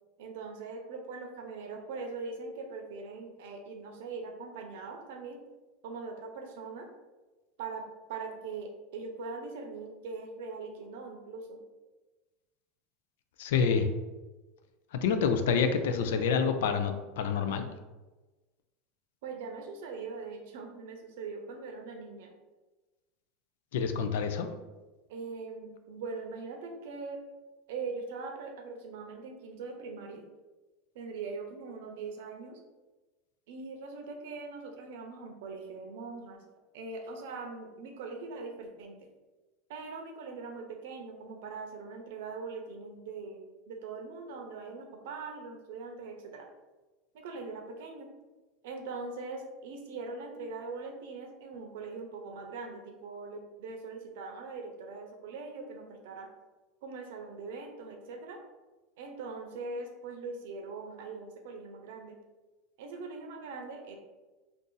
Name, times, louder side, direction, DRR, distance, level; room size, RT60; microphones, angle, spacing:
voice 1, 0.2-5.4 5.8-6.9 7.6-11.6 19.2-22.3 25.1-27.2 27.7-30.3 30.9-32.6 33.5-36.4 36.7-39.0 39.7-46.5 47.1-48.1 48.6-56.3 56.8-58.4 59.0-62.2 62.8-64.0, right 4 dB, 70° right, 3 dB, 0.6 m, -41 dB
voice 2, 13.4-13.9 15.0-17.6 23.7-24.5, left 6 dB, 85° left, 8 dB, 0.4 m, -27 dB
2.6 x 2.5 x 3.8 m, 1.2 s
supercardioid pair, 165°, 0 cm